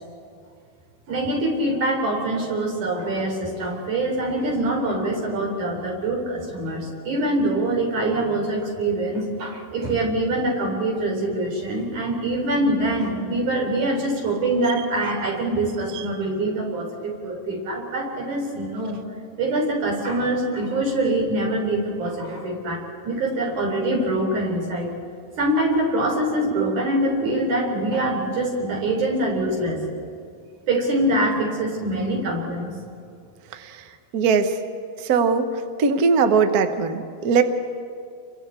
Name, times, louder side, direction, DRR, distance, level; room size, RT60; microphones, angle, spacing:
voice 1, 1.1-19.0 19.4-24.9 25.4-29.8 30.7-32.8, right 1 dB, 90° right, -1 dB, 5.2 m, -24 dB
voice 2, 34.1-34.5 35.0-35.5 35.8-37.4, right 5 dB, 70° right, 8 dB, 0.9 m, -20 dB
30.0 x 24.0 x 4.5 m, 2.3 s
omnidirectional pair, 3.4 m